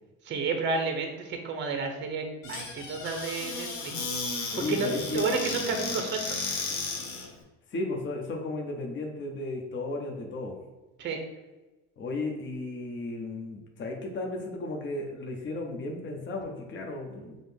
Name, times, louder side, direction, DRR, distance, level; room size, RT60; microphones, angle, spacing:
voice 1, 0.2-3.9 4.4-6.4 11.0-11.2, right 4 dB, 35° right, 4 dB, 0.7 m, -31 dB
Squeak / Cupboard open or close, 2.4-7.3, left 3 dB, 55° left, 1.0 m, -34 dB
voice 2, 4.5-5.3 7.7-10.6 12.0-17.4, left 2 dB, 35° left, 1 dB, 0.8 m, -34 dB
5.3 x 2.0 x 3.4 m, 1.1 s
supercardioid pair, 95°, 35 cm